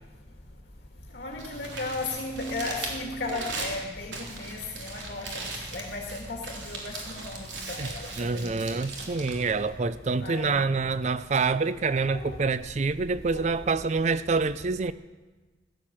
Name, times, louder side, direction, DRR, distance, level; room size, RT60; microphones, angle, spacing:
voice 1, 1.1-5.3 5.7-8.6 10.2-10.6 12.0-12.4 13.3-13.4, left 2 dB, 65° left, 1.9 m, -35 dB
Crumpling crinkling, 1.2-10.3, right 3 dB, 85° right, 3.4 m, -39 dB
voice 2, 7.8-14.9, right 4 dB, 40° right, 0.4 m, -27 dB
16.0 x 11.5 x 7.5 m
head